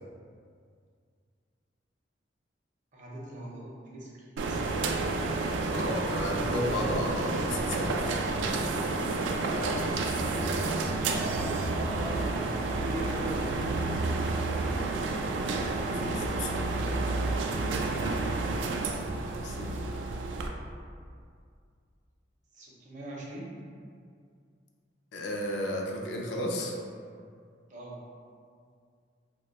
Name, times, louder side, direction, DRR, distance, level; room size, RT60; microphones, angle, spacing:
voice 1, 2.9-5.1 8.7-8.9 10.2-10.4 11.0-12.5 12.7-14.0 17.8-18.3 22.5-23.5 27.7-28.0, right 1 dB, 45° right, -4 dB, 0.6 m, -40 dB
sound 1, 4.4-20.5, right 3 dB, 80° right, 0.3 m, -30 dB
voice 2, 5.7-8.1 15.1-16.8 19.4-20.0 25.1-26.7, left 1 dB, 75° left, 0 dB, 0.5 m, -34 dB
2.8 x 2.2 x 3.9 m, 2.2 s
head